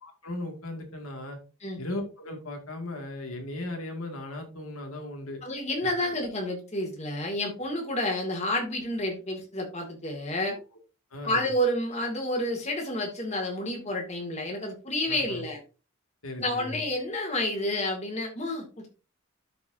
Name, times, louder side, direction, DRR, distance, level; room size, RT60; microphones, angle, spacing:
voice 1, 0.0-1.4 1.8-5.4 11.1-11.5 15.1-15.5 16.2-16.8, left 1 dB, 75° left, 3 dB, 2.3 m, -37 dB
voice 2, 5.4-10.6 11.2-15.6 16.4-18.9, left 1 dB, 30° left, 1 dB, 2.3 m, -30 dB
12.5 x 4.8 x 2.8 m, 0.33 s
head